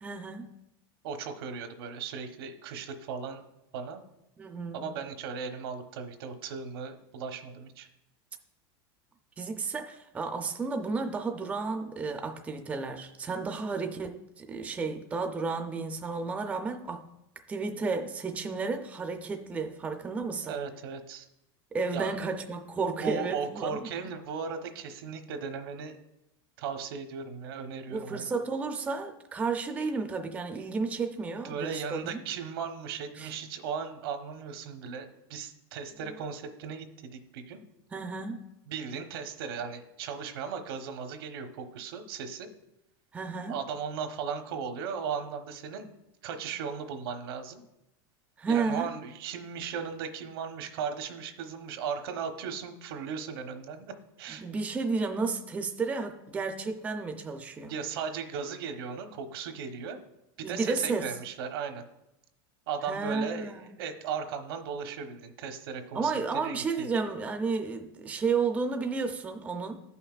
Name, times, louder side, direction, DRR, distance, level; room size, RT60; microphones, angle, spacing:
voice 1, 0.0-0.5 4.4-4.9 9.4-17.1 17.5-20.6 21.7-23.9 27.9-32.2 33.1-33.3 37.9-38.5 43.1-43.6 48.4-48.9 54.4-57.8 60.4-61.1 62.9-63.8 65.9-69.8, right 4 dB, 10° right, 6 dB, 0.4 m, -32 dB
voice 2, 1.0-3.4 3.7-4.0 4.7-7.9 20.4-21.3 21.9-22.2 23.0-26.0 26.6-28.3 31.4-37.6 38.7-42.5 43.5-45.9 46.2-47.6 48.5-54.5 57.7-60.0 60.4-61.8 62.7-66.1 66.4-67.0, right 6 dB, 75° right, 6 dB, 1.0 m, -37 dB
14.0 x 5.6 x 2.4 m, 0.86 s
supercardioid pair, 155°, 13 cm